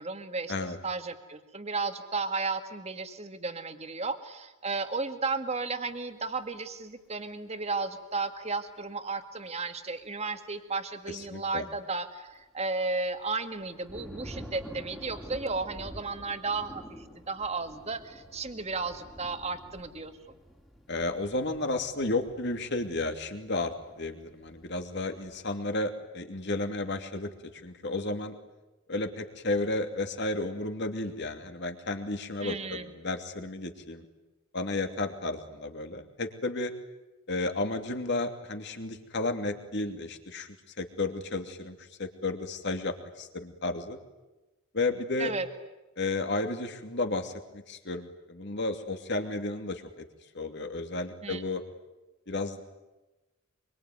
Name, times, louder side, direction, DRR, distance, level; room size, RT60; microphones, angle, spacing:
voice 1, 0.0-0.5 0.8-20.4 32.4-32.9 45.2-45.5 51.2-51.4, right 3 dB, 30° right, 8 dB, 2.0 m, -34 dB
voice 2, 11.1-11.7 20.9-28.4 28.9-34.0 34.5-36.7 37.3-44.0 44.7-45.3 46.0-50.0 50.3-51.6 52.3-52.6, left 2 dB, 55° left, 6 dB, 2.8 m, -33 dB
sound 1, 12.9-13.0 13.2-23.8 24.2-25.4, equal, ahead, 2.8 m, -48 dB
25.0 x 24.0 x 9.5 m, 1.1 s
head